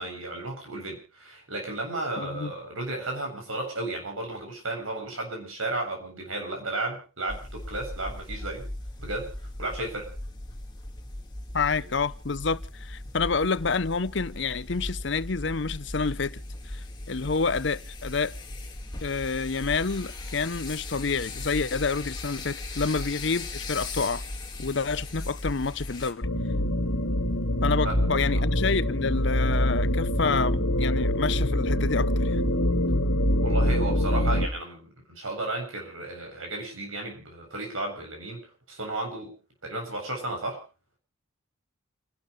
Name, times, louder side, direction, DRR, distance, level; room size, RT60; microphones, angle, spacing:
voice 1, 0.0-8.7 9.0-9.3 9.6-10.1 11.8-11.9 27.8-28.4 33.4-39.3 39.6-40.6, right 2 dB, 80° right, 7.9 m, -34 dB
voice 2, 2.2-2.5 11.5-16.4 16.7-18.3 19.0-24.2 24.6-26.3 27.6-32.4, left 4 dB, 60° left, 0.7 m, -28 dB
sound 1, 7.3-26.1, left 2 dB, 20° left, 2.3 m, -38 dB
sound 2, 26.2-34.5, equal, 90° left, 2.1 m, -24 dB
29.5 x 12.0 x 3.2 m
head